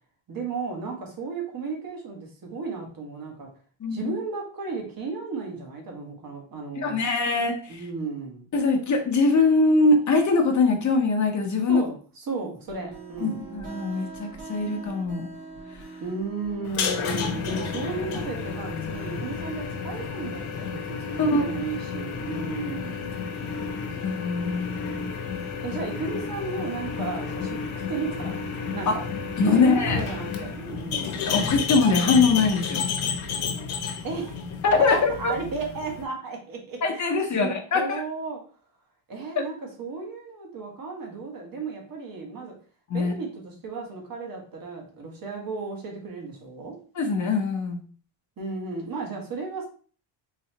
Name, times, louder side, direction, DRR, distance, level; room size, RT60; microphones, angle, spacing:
voice 1, 0.3-3.5 3.9-7.0 7.7-8.5 11.7-13.4 16.0-23.1 25.6-27.6 27.9-28.4 28.7-29.1 29.4-31.2 34.0-34.4 34.8-38.4 39.1-42.6 42.9-46.8 48.4-49.7, right 4 dB, 45° right, 1 dB, 1.3 m, -34 dB
voice 2, 3.8-4.1 6.7-7.8 8.5-11.8 13.2-15.3 21.2-21.5 23.5-25.2 28.9-29.0 29.4-30.0 31.3-32.9 34.6-35.3 36.8-38.0 42.9-43.1 46.9-47.8, left 3 dB, 35° left, 3 dB, 0.8 m, -23 dB
sound 1, 12.7-20.2, right 3 dB, 85° right, 1.6 m, -42 dB
sound 2, 16.6-36.0, left 6 dB, 80° left, 1.0 m, -31 dB
4.1 x 3.1 x 2.8 m, 0.41 s
cardioid pair, 130°, 50 cm